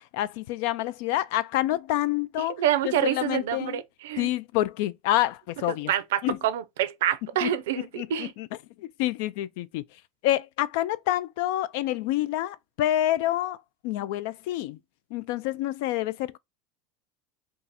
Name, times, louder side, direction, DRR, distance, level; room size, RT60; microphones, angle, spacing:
voice 1, 0.1-3.8 4.2-5.9 6.2-6.4 7.4-8.5 8.8-9.8 10.2-13.6 13.8-14.8 15.1-16.4, left 14 dB, 70° left, 0.3 m, -28 dB
voice 2, 2.4-4.3 5.7-8.3, right 10 dB, 80° right, 0.5 m, -27 dB
2.7 x 2.4 x 4.0 m
supercardioid pair, 110°, 0 cm